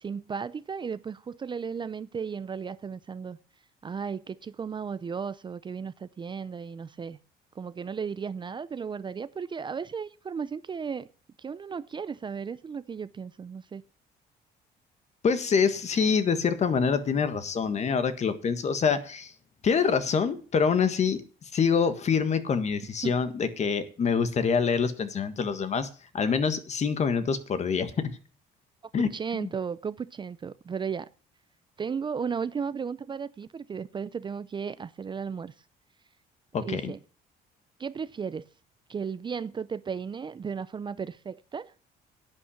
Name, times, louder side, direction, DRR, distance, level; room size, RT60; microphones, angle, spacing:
voice 1, 0.0-3.4 3.8-7.2 7.5-11.1 11.4-13.8 23.0-23.1 28.8-31.1 31.8-35.5 36.6-37.0 37.8-38.5 38.9-41.7, right 6 dB, 30° right, 0.6 m, -35 dB
voice 2, 15.2-19.3 19.6-25.9 26.1-28.1 28.9-29.5 36.5-36.9, left 6 dB, 40° left, 1.7 m, -26 dB
11.0 x 9.0 x 7.0 m
cardioid pair, 110°, 17 cm